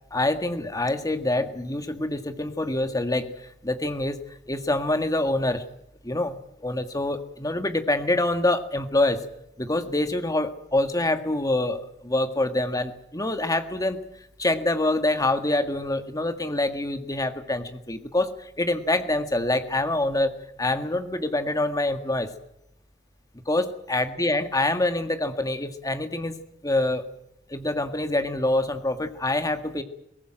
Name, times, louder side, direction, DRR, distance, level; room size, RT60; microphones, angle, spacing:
voice 1, 0.1-4.2 4.5-5.6 6.0-9.2 9.6-14.0 14.4-22.3 23.5-26.4 26.6-27.0 27.5-29.8, left 2 dB, 20° left, 8 dB, 1.7 m, -26 dB
22.0 x 18.5 x 9.0 m, 0.80 s
head